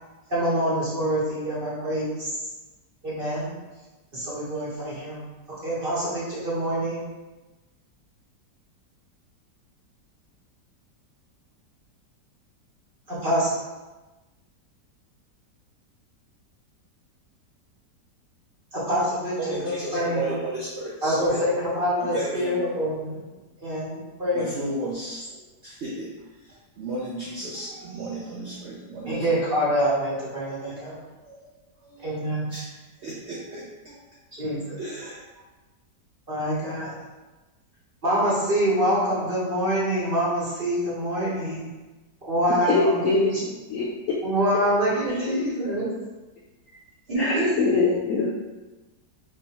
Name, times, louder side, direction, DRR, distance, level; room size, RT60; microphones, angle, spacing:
voice 1, 0.3-2.3 3.0-3.5 4.1-5.2 5.6-7.0 13.1-13.5 18.7-20.4 21.0-23.2 23.6-24.5 29.1-31.0 32.0-32.5 34.3-34.8 36.3-36.9 38.0-41.7 42.2-42.7 43.1-43.2 44.2-45.9 47.1-47.5, equal, 35° right, -8 dB, 1.2 m, -25 dB
voice 2, 19.4-21.4 22.0-22.6 24.3-25.3 25.6-26.1 26.8-29.2 30.4-30.8 31.3-31.4 31.8-32.2 32.5-32.7 33.0-34.0 34.8-35.2, right 2 dB, 80° right, -5 dB, 0.6 m, -34 dB
voice 3, 42.5-44.2 45.1-45.3 47.2-48.3, left 3 dB, 70° left, -5 dB, 0.8 m, -24 dB
3.6 x 3.1 x 2.9 m, 1.1 s
omnidirectional pair, 1.8 m